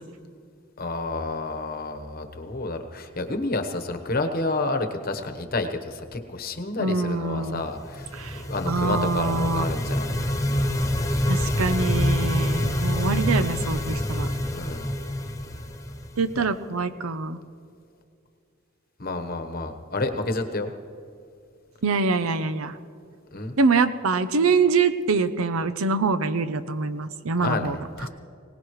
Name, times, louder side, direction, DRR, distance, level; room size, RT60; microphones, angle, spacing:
voice 1, 0.8-8.1 8.4-10.2 14.5-14.9 16.4-16.5 19.0-20.7 23.3-23.5 27.4-28.1, left 2 dB, 45° left, 7 dB, 1.1 m, -29 dB
voice 2, 6.8-7.6 8.1-9.6 11.3-14.3 16.2-17.4 21.8-22.7 23.6-27.8, right 4 dB, 90° right, 11 dB, 0.7 m, -24 dB
sound 1, 7.7-16.5, left 1 dB, 15° left, 0.7 m, -26 dB
21.5 x 18.5 x 3.2 m, 2.4 s
head